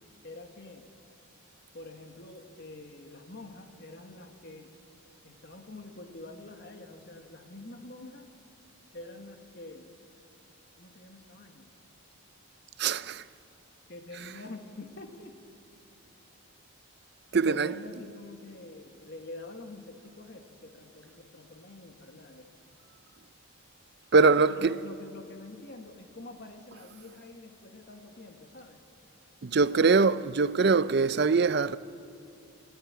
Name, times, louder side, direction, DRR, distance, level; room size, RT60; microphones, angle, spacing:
voice 1, 0.2-0.9 1.7-4.7 5.2-8.3 8.9-9.9 10.8-11.7 13.9-15.4 17.4-22.5 24.4-28.8, left 2 dB, 50° left, 1.6 m, -46 dB
voice 2, 12.8-13.2 17.3-17.7 24.1-24.7 29.4-31.8, right 4 dB, 50° right, 0.5 m, -22 dB
29.5 x 12.5 x 8.7 m
head